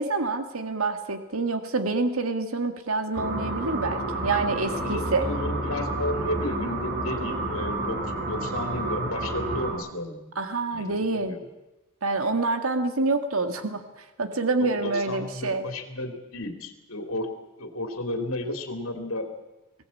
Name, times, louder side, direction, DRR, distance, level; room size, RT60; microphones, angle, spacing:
voice 1, 0.0-5.3 10.4-11.4 12.0-13.8 14.2-15.7, right 3 dB, 75° right, 8 dB, 1.9 m, -27 dB
sound 1, 3.1-9.7, right 2 dB, 50° right, 5.1 m, -30 dB
voice 2, 4.8-10.2 10.7-11.5 14.6-17.3 17.6-19.3, left 1 dB, 70° left, 6 dB, 3.1 m, -33 dB
22.0 x 18.0 x 8.5 m, 1.0 s
head